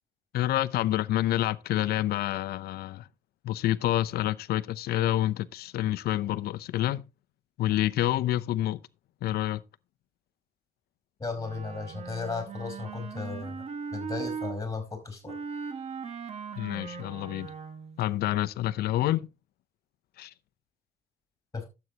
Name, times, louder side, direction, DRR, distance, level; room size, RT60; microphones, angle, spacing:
voice 1, 0.3-3.1 3.4-7.0 7.6-8.8 9.2-9.6 16.6-17.5 18.0-19.3 20.2-20.3, left 14 dB, 70° left, 0.6 m, -28 dB
voice 2, 11.2-13.7 13.9-15.4 21.5-21.7, left 4 dB, 20° left, 4.8 m, -35 dB
Wind instrument woodwind instrument, 11.4-14.6 15.3-18.0, right 6 dB, 40° right, 1.6 m, -39 dB
12.5 x 8.0 x 2.9 m
cardioid pair, 110°, 17 cm